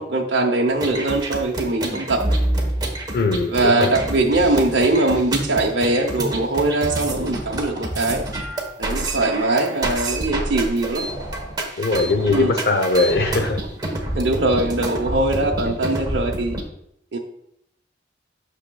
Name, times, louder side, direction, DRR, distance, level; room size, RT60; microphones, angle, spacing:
voice 1, 0.0-2.4 3.5-8.2 8.8-11.1 12.3-12.5 14.2-16.6 17.1-17.2, right 2 dB, 70° right, 0 dB, 0.8 m, -21 dB
sound 1, 0.7-16.6, right 1 dB, 25° right, 1.1 m, -27 dB
voice 2, 3.1-3.9 11.8-13.6 15.6-15.8, left 3 dB, 60° left, 7 dB, 0.7 m, -20 dB
8.6 x 6.5 x 2.3 m, 0.75 s
head